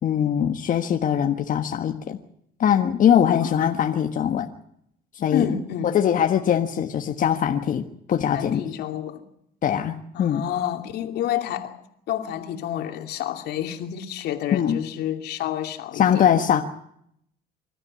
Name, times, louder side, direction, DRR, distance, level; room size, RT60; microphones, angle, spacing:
voice 1, 0.0-2.2 2.6-4.5 5.1-5.5 5.9-8.6 9.6-10.4 14.5-14.8 16.0-16.6, left 9 dB, 50° left, 1.5 m, -21 dB
voice 2, 3.4-3.7 5.3-5.9 8.3-9.2 10.1-11.8 12.1-16.4, left 10 dB, 75° left, 2.7 m, -29 dB
25.5 x 13.5 x 9.9 m
cardioid pair, 110°, 17 cm